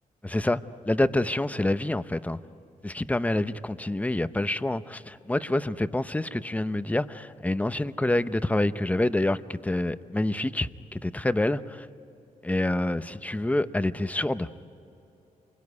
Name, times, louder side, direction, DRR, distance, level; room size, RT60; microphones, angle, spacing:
voice 1, 0.2-2.4 2.8-11.9 12.4-14.5, left 1 dB, 10° left, 0.7 m, -27 dB
27.5 x 22.0 x 9.7 m
cardioid pair, 95°, 15 cm